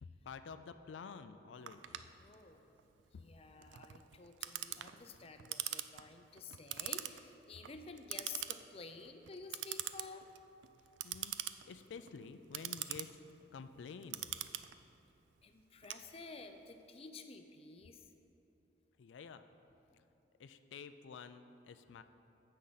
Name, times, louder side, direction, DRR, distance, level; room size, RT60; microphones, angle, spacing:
voice 1, 0.0-1.8 3.1-3.2 11.0-11.3 11.6-13.2 13.5-14.3 19.0-19.4 20.4-22.0, left 5 dB, 90° left, 10 dB, 0.4 m, -50 dB
Clock, 1.7-16.6, right 13 dB, 85° right, 0.4 m, -44 dB
voice 2, 2.2-2.7 3.2-10.3 15.4-18.0, left 4 dB, 35° left, 7 dB, 0.5 m, -51 dB
15.0 x 5.5 x 4.0 m, 2.9 s
head